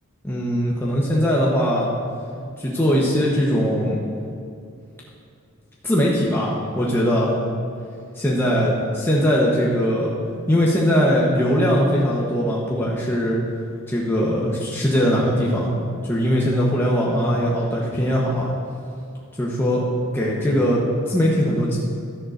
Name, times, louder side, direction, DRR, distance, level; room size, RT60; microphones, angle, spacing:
voice 1, 0.2-1.9 2.6-4.0 5.8-7.4 8.1-10.1 10.5-13.4 13.9-15.7 16.0-18.5 19.4-19.8 20.1-21.8, equal, 10° left, -5 dB, 1.0 m, -20 dB
12.5 x 10.5 x 2.6 m, 2.5 s
head